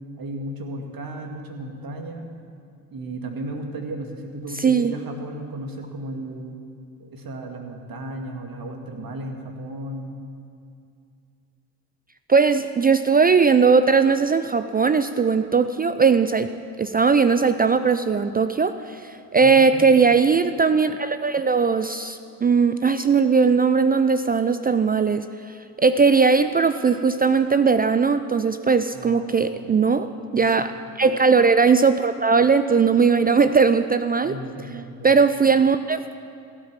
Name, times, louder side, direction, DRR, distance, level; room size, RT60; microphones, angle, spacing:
voice 1, 0.2-2.3 2.9-6.5 7.0-10.1 19.4-19.9 28.9-29.9 30.4-30.8 34.2-35.2, right 1 dB, 45° right, 3 dB, 2.2 m, -35 dB
voice 2, 4.6-4.9 12.3-16.5 16.8-25.3 25.8-30.7 31.0-34.3 35.0-36.2, right 5 dB, 20° right, 11 dB, 0.4 m, -19 dB
15.5 x 8.8 x 7.4 m, 2.5 s
hypercardioid pair, 60°, 49 cm